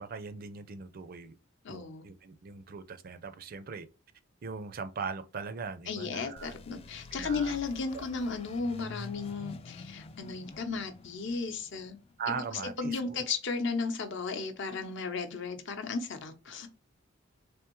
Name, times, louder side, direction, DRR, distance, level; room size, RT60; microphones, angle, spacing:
voice 1, 0.0-1.4 1.7-3.9 4.4-6.5 7.1-7.6 7.9-8.0 12.2-13.2, right 5 dB, 45° right, 0.4 m, -40 dB
voice 2, 1.6-2.1 5.9-12.0 12.3-12.4 12.8-16.7, left 4 dB, 60° left, 0.7 m, -35 dB
sound 1, 6.4-12.9, left 2 dB, 30° left, 0.3 m, -48 dB
3.5 x 3.4 x 3.0 m
head